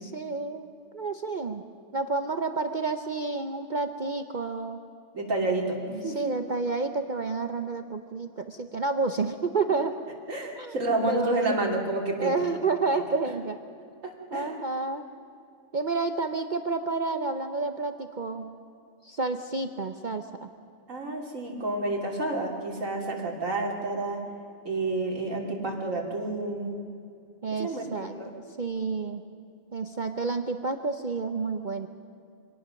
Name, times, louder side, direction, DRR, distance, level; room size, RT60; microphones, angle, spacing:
voice 1, 0.0-0.7 0.9-1.6 1.9-4.8 6.1-9.9 10.6-10.7 11.0-11.6 12.2-13.6 14.3-15.0 15.7-18.5 19.0-20.5 27.4-29.2 29.7-31.9, right 3 dB, 40° right, 7 dB, 0.8 m, -30 dB
voice 2, 5.1-6.3 10.3-12.4 14.0-14.5 20.9-24.2 24.6-26.8 27.6-28.3, right 2 dB, 65° right, 0 dB, 3.2 m, -30 dB
25.0 x 18.0 x 6.4 m, 2.5 s
omnidirectional pair, 1.5 m